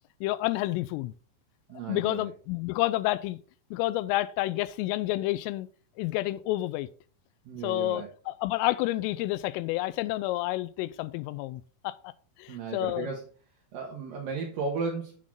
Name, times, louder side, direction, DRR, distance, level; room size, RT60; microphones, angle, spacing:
voice 1, 0.2-1.1 1.9-3.4 3.7-5.7 6.0-6.9 7.6-12.1 12.4-13.1, left 17 dB, 85° left, 3.2 m, -29 dB
voice 2, 1.7-2.3 7.5-8.1 12.5-13.2 13.7-15.2, right 4 dB, 75° right, 2.1 m, -35 dB
8.0 x 7.6 x 3.7 m
omnidirectional pair, 5.8 m